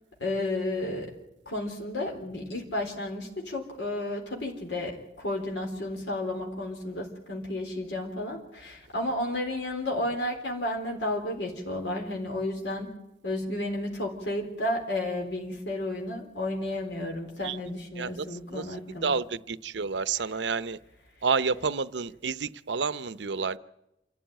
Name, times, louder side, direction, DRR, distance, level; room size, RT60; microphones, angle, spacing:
voice 1, 0.2-1.1 1.5-12.9 13.2-19.2 20.1-20.3, left 1 dB, 80° left, 1 dB, 3.9 m, -32 dB
voice 2, 19.7-20.8 21.2-23.6, right 5 dB, 80° right, 15 dB, 0.7 m, -28 dB
27.5 x 13.5 x 9.2 m, 0.92 s
head